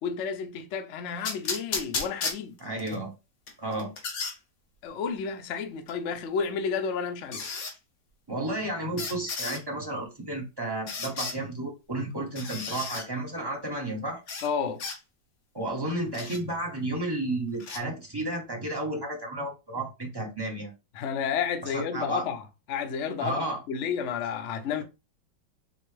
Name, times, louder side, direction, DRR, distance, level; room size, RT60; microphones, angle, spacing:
voice 1, 0.0-2.6 4.8-7.4 14.4-14.8 20.9-24.8, left 6 dB, 75° left, 0.6 m, -31 dB
sound 1, 1.2-3.0 3.5-4.4 5.9-6.0 7.3-7.7 9.0-9.6 10.9-11.4 12.3-13.1 14.3-14.5 14.8-15.0 16.1-16.4 17.6-17.8, left 4 dB, 50° left, 1.3 m, -33 dB
voice 2, 2.6-3.1 3.6-3.9 8.3-14.2 15.5-20.7 21.7-22.3 23.2-23.6, right 1 dB, 25° right, 0.5 m, -32 dB
4.4 x 3.4 x 3.2 m
omnidirectional pair, 2.2 m